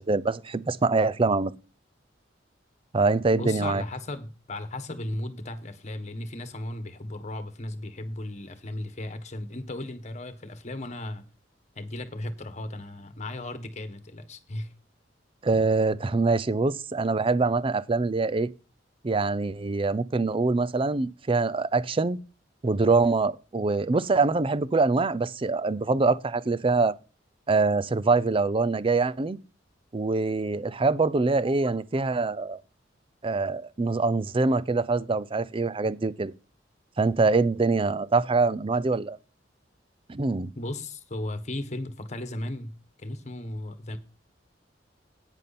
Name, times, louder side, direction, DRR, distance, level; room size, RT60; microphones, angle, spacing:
voice 1, 0.0-1.5 2.9-3.8 15.4-18.5 19.0-22.2 22.6-27.0 27.5-29.4 29.9-32.6 33.2-36.3 37.0-39.2 40.1-40.5, right 3 dB, 30° right, 0.5 m, -24 dB
voice 2, 3.4-11.2 11.7-14.7 40.6-42.7 43.0-44.0, left 1 dB, 40° left, 1.4 m, -36 dB
10.5 x 9.2 x 4.2 m
head